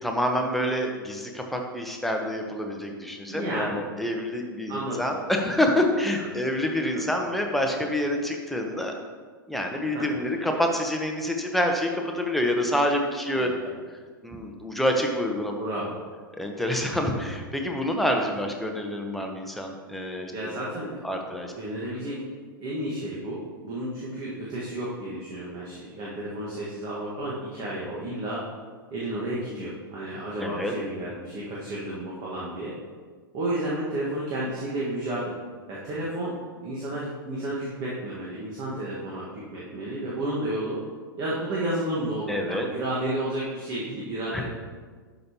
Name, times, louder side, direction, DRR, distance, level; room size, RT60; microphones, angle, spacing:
voice 1, 0.0-8.9 9.5-13.5 14.2-15.6 16.4-20.5 21.0-21.5 30.4-30.7 42.3-42.7 44.3-44.4, left 1 dB, ahead, 2 dB, 1.0 m, -27 dB
voice 2, 3.3-3.8 4.7-5.0 6.2-6.3 6.9-7.1 9.9-10.2 13.3-13.5 15.6-16.0 20.3-20.9 21.5-22.2 22.6-28.4 28.9-32.7 33.3-35.3 35.7-36.3 36.6-40.8 41.2-44.4, right 1 dB, 35° right, -6 dB, 1.7 m, -32 dB
12.0 x 5.3 x 3.0 m, 1.5 s
figure-of-eight pair, 100°, 12 cm